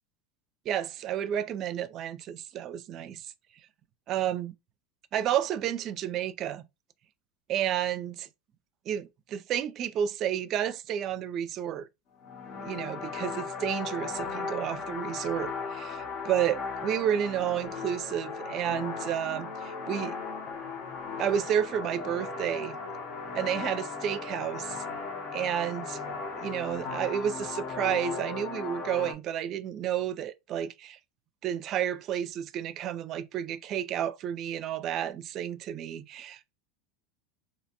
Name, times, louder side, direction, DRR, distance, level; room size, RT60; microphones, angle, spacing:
voice 1, 0.7-3.3 4.1-4.5 5.1-6.7 7.5-8.3 8.9-11.9 12.5-20.2 21.2-22.8 23.3-24.8 25.3-26.0 26.3-31.0 31.4-36.5, right 10 dB, 45° right, 0.4 m, -31 dB
sound 1, 12.2-29.1, left 5 dB, 55° left, 0.7 m, -37 dB
2.7 x 2.2 x 2.8 m
hypercardioid pair, 100°, 0 cm